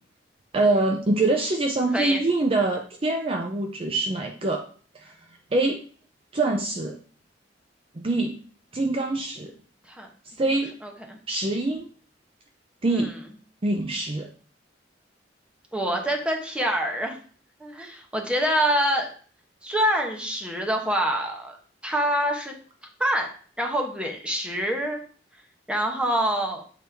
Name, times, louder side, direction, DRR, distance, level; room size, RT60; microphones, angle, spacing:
voice 1, 0.5-4.6 4.9-5.1 5.5-5.8 6.3-7.0 8.0-8.3 8.7-9.5 10.4-10.7 11.3-11.9 12.8-13.1 13.6-14.3, right 2 dB, 30° right, 3 dB, 0.5 m, -24 dB
voice 2, 10.8-11.2 12.9-13.1 15.7-17.2 17.6-19.1 19.6-21.6 21.8-22.5 23.0-23.3 23.6-25.0 25.7-26.6, equal, 5° right, 2 dB, 1.0 m, -25 dB
7.7 x 4.2 x 3.4 m, 0.43 s
head